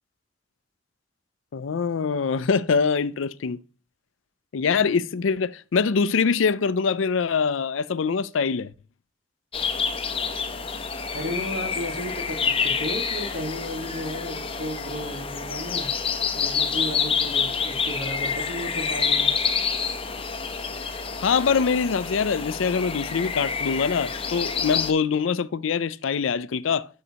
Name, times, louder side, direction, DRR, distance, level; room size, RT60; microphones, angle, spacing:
voice 1, 1.5-3.6 4.5-8.7 21.2-26.9, left 5 dB, 85° left, 0.5 m, -24 dB
sound 1, 9.5-24.9, left 5 dB, 30° left, 0.8 m, -28 dB
voice 2, 11.1-15.9 16.3-19.3, equal, 65° right, 1.8 m, -34 dB
9.2 x 6.5 x 2.9 m
head